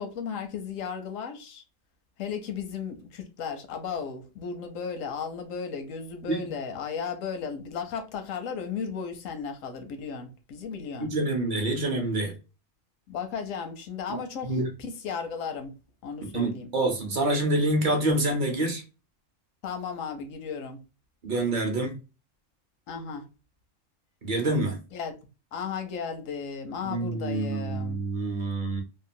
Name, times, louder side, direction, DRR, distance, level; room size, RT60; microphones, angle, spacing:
voice 1, 0.0-1.6 2.2-11.1 13.1-15.7 16.0-16.7 19.6-20.8 22.9-23.2 24.9-25.1 25.5-28.0, left 6 dB, 85° left, 1.1 m, -35 dB
voice 2, 11.0-12.3 14.1-14.7 16.3-18.8 21.2-22.0 24.2-24.8 26.8-28.8, right 2 dB, 50° right, 0.7 m, -27 dB
2.9 x 2.1 x 2.6 m
omnidirectional pair, 1.3 m